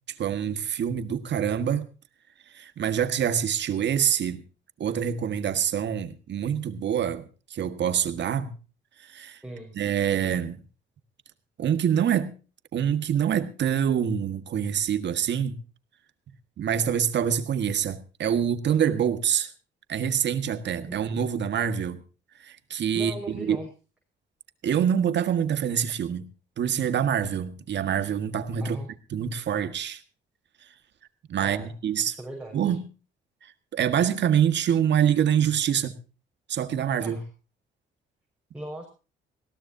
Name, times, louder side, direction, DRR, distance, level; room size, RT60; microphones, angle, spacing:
voice 1, 0.2-1.9 2.5-4.4 4.8-7.2 7.5-8.5 9.0-9.4 9.7-10.6 11.6-12.4 12.7-15.6 16.6-19.5 19.9-22.0 22.4-23.6 24.6-26.3 26.6-28.8 29.1-30.0 31.3-32.2 32.5-32.9 33.4-36.0 36.5-37.2, right 8 dB, 65° right, 1.8 m, -25 dB
voice 2, 9.4-9.8 20.9-21.0 22.9-23.7 28.6-28.9 31.4-31.7 32.1-32.7 37.0-37.3 38.5-38.9, right 1 dB, 5° right, 5.4 m, -39 dB
20.5 x 17.0 x 2.8 m
cardioid pair, 90°, 20 cm